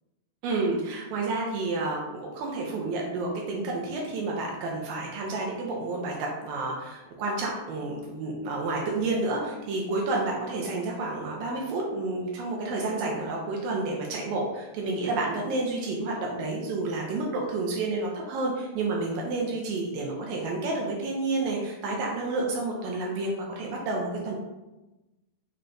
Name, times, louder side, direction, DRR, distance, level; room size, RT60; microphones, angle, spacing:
voice 1, 0.4-23.3 23.6-24.4, right 2 dB, 85° right, -2 dB, 2.0 m, -30 dB
6.3 x 2.2 x 3.8 m, 1.1 s
omnidirectional pair, 4.7 m